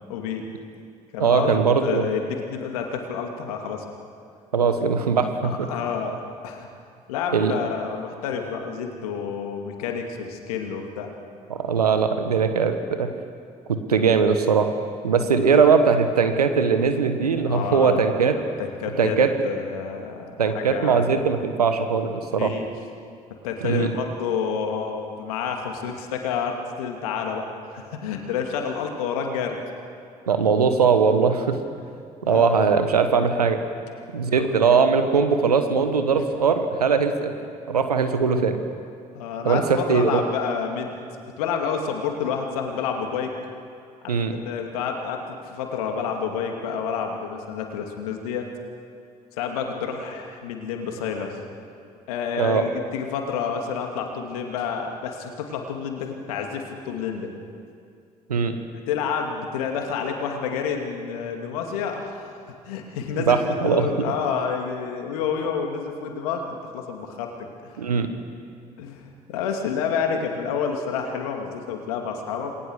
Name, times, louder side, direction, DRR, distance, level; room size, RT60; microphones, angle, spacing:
voice 1, 0.1-0.4 1.1-3.8 5.4-6.7 7.1-11.1 17.5-18.1 18.6-21.1 22.4-22.7 23.4-29.6 31.8-32.6 34.3-34.5 36.2-36.3 39.1-41.0 41.4-43.3 44.0-48.5 49.3-51.4 52.1-57.3 58.9-62.4 62.7-66.4 66.7-67.7 68.8-72.5, left 6 dB, 75° left, 3 dB, 2.7 m, -29 dB
voice 2, 1.2-2.0 4.5-5.7 7.3-7.5 11.6-13.1 13.7-14.7 15.0-18.4 19.0-19.3 20.4-22.5 23.6-23.9 30.3-31.6 32.2-33.6 34.1-37.3 37.7-38.6 39.4-40.2 44.1-44.4 52.4-52.6 58.3-58.6 63.3-63.9 67.8-68.1, right 5 dB, 85° right, 8 dB, 1.4 m, -20 dB
28.0 x 20.5 x 6.5 m, 2.4 s
figure-of-eight pair, 50°, 19 cm